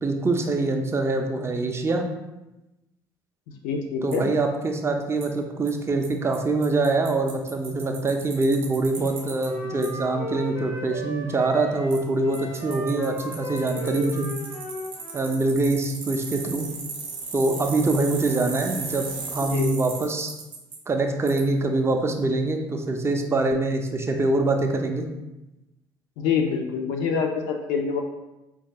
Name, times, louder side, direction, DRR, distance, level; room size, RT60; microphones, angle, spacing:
voice 1, 0.0-2.1 4.0-14.3 15.1-16.7 17.3-20.3 20.9-25.1, right 2 dB, 20° right, 4 dB, 0.5 m, -24 dB
voice 2, 3.6-4.2 19.5-19.7 26.2-28.0, left 6 dB, 65° left, 3 dB, 0.4 m, -25 dB
Bicycle, 4.1-4.2 5.2-5.3 5.7-5.8 6.0-6.1 6.3-6.4 6.6-9.5 9.8-9.9 11.9-12.0 12.3-20.8 21.3-21.4, right 4 dB, 80° right, 0.6 m, -36 dB
Wind instrument woodwind instrument, 9.0-15.4, equal, 90° left, 0.8 m, -35 dB
4.3 x 2.3 x 2.8 m, 0.99 s
figure-of-eight pair, 50°, 12 cm